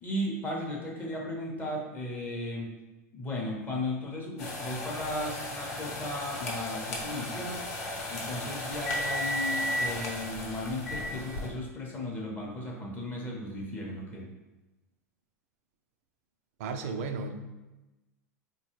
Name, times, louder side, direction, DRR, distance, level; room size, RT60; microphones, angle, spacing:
voice 1, 0.0-2.7 3.1-7.6 8.1-14.3, left 1 dB, 20° left, -1 dB, 0.7 m, -35 dB
sound 1, 4.4-11.5, left 1 dB, 70° left, 0.9 m, -34 dB
voice 2, 16.6-17.3, right 4 dB, 60° right, 7 dB, 0.4 m, -34 dB
4.0 x 2.2 x 3.0 m, 1.1 s
hypercardioid pair, 90°, 9 cm